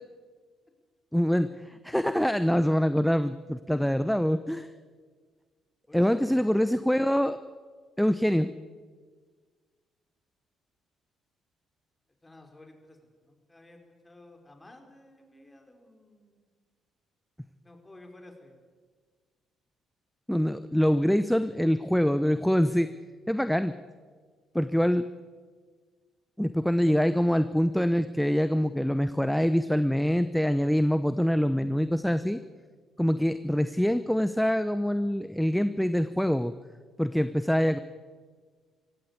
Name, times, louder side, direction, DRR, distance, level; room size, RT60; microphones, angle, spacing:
voice 1, 1.1-4.7 5.9-7.4 8.0-8.5 20.3-22.9 23.3-23.7 24.5-25.1 26.4-32.4 33.0-36.5 37.0-37.8, equal, 5° left, 12 dB, 0.9 m, -25 dB
voice 2, 5.9-6.5 12.2-16.5 17.6-18.6, left 1 dB, 20° left, 4 dB, 4.9 m, -52 dB
23.0 x 16.5 x 8.3 m, 1.6 s
hypercardioid pair, 50°, 0 cm